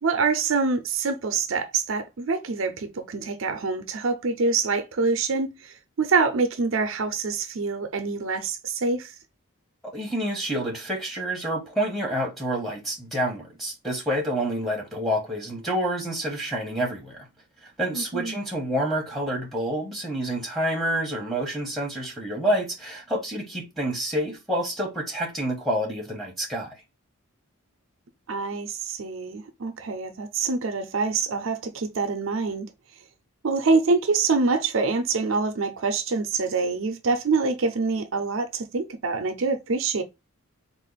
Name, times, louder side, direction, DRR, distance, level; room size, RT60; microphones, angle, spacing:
voice 1, 0.0-9.1 17.9-18.4 28.3-32.7 33.4-40.0, right 4 dB, 65° right, 0.5 m, -25 dB
voice 2, 9.9-17.3 17.6-26.8, right 1 dB, ahead, 1.1 m, -28 dB
3.6 x 2.5 x 4.0 m
head